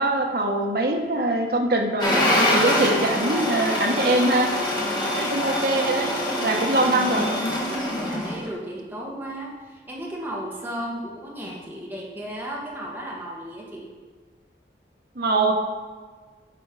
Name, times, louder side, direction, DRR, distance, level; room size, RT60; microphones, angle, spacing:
voice 1, 0.0-4.5 5.2-6.1 6.4-7.3 15.2-15.5, right 2 dB, 55° right, 3 dB, 0.9 m, -23 dB
sound 1, 2.0-8.5, left 1 dB, 25° left, 1.2 m, -24 dB
voice 2, 4.8-5.6 7.7-13.9, right 1 dB, 10° right, -3 dB, 1.4 m, -35 dB
8.1 x 4.4 x 6.0 m, 1.5 s
head